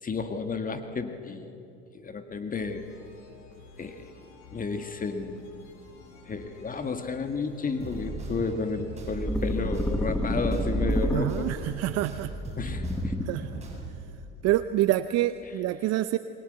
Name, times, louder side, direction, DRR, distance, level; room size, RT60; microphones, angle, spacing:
voice 1, 0.0-1.5 1.9-2.8 3.8-4.1 4.5-5.5 6.3-11.5 12.6-13.1, left 4 dB, 25° left, 7 dB, 1.9 m, -32 dB
sound 1, 2.6-13.2, left 5 dB, 65° left, 7.4 m, -52 dB
sound 2, 7.8-14.0, right 3 dB, 20° right, 7.4 m, -38 dB
sound 3, 9.2-11.7 12.6-13.6, equal, 5° left, 1.6 m, -29 dB
voice 2, 11.1-12.3 13.3-13.6 14.4-16.2, right 14 dB, 50° right, 12 dB, 0.8 m, -27 dB
28.0 x 21.5 x 8.1 m, 2.8 s
hypercardioid pair, 80°, 34 cm